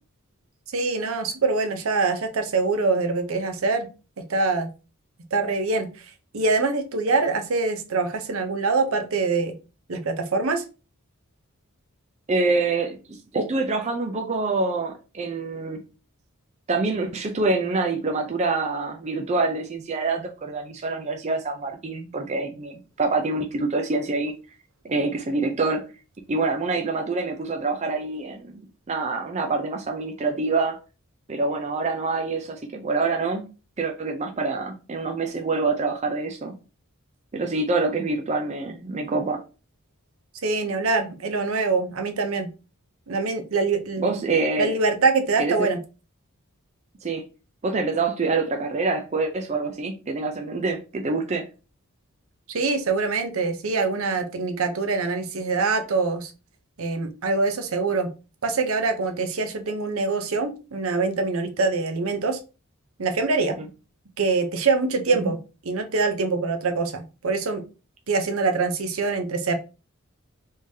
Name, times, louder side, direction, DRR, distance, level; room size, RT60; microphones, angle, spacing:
voice 1, 0.7-3.9 4.3-4.7 5.3-5.9 6.3-9.5 9.9-10.6 40.4-42.5 43.1-44.1 44.6-45.8 52.5-56.3 56.8-58.1 58.4-62.4 63.0-63.6 64.2-65.4 65.6-67.6 68.1-69.5, right 3 dB, 75° right, 0.7 m, -24 dB
voice 2, 12.3-15.8 16.7-24.3 24.8-25.8 26.3-30.8 31.3-33.4 33.8-36.5 37.3-39.4 44.0-44.7 45.4-45.7 47.0-47.2 47.6-51.5 63.6-63.7 65.2-65.3, right 3 dB, 30° right, 0.5 m, -26 dB
3.6 x 3.2 x 2.7 m
head